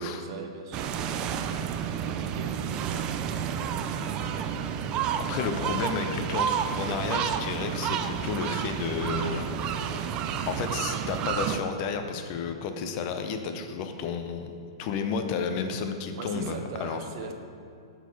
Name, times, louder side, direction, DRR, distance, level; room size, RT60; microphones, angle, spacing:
voice 1, 0.0-3.6 16.2-17.3, right 4 dB, 50° right, 5 dB, 0.8 m, -41 dB
sound 1, 0.7-11.6, right 8 dB, 30° right, 0.4 m, -30 dB
voice 2, 5.2-9.5 10.5-17.0, left 5 dB, 40° left, 6 dB, 0.7 m, -32 dB
8.1 x 6.2 x 4.1 m, 2.5 s
figure-of-eight pair, 110°, 3 cm